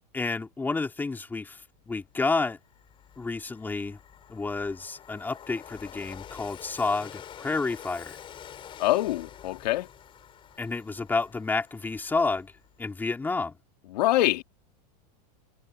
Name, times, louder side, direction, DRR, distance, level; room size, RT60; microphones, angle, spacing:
voice 1, 0.1-2.6 3.2-4.0 4.3-8.2 10.6-12.5 12.8-13.6, left 3 dB, 10° left, 3.0 m, -30 dB
Train, 1.9-2.0 2.4-12.8, left 9 dB, 25° left, 4.7 m, -47 dB
voice 2, 8.8-9.9 13.9-14.4, left 15 dB, 80° left, 2.4 m, -24 dB
supercardioid pair, 150°, 21 cm